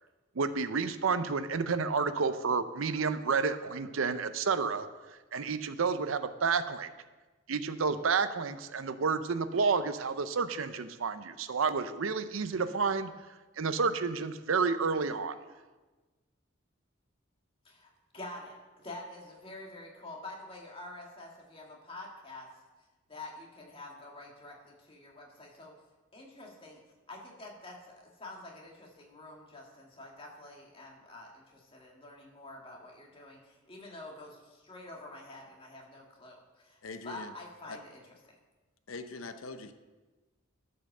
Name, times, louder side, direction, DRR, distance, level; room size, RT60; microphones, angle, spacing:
voice 1, 0.4-4.9 5.3-6.9 7.5-13.1 13.6-15.4, right 5 dB, 85° right, 0.6 m, -30 dB
voice 2, 17.6-22.5 23.1-25.7 26.1-36.8 37.0-38.3, left 2 dB, 25° left, 2.0 m, -47 dB
voice 3, 36.8-37.3 37.6-37.8 38.9-39.7, left 3 dB, 85° left, 0.7 m, -42 dB
12.0 x 5.6 x 6.6 m
head